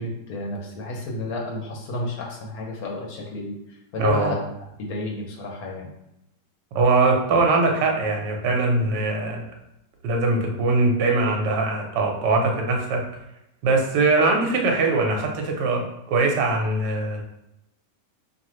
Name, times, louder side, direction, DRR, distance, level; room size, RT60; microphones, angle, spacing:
voice 1, 0.0-4.4 4.8-5.9, left 2 dB, 60° left, -1 dB, 1.3 m, -31 dB
voice 2, 4.0-4.3 6.7-9.4 10.0-13.0 13.6-15.8 16.1-17.2, right 3 dB, 80° right, 1 dB, 1.4 m, -21 dB
5.3 x 2.7 x 3.1 m, 0.86 s
omnidirectional pair, 1.9 m